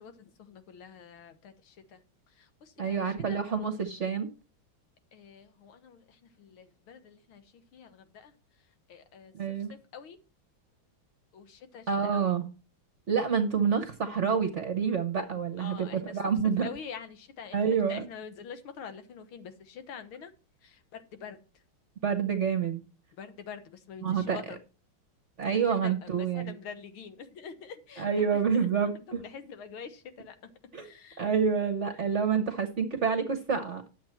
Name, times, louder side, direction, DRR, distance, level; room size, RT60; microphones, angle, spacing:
voice 1, 0.0-2.0 2.3-3.4 5.1-8.3 8.9-10.2 11.3-12.3 15.6-16.2 16.6-20.3 20.6-21.4 23.2-24.6 25.7-28.7 28.9-30.5 30.8-31.2, left 6 dB, 85° left, 2.1 m, -46 dB
voice 2, 2.8-4.3 9.3-9.7 11.9-12.4 13.1-16.7 17.5-18.1 22.0-22.8 24.0-24.4 25.4-26.6 28.0-29.2 30.7-30.9 31.2-33.8, right 6 dB, 45° right, 1.0 m, -28 dB
11.0 x 7.5 x 4.4 m
omnidirectional pair, 2.3 m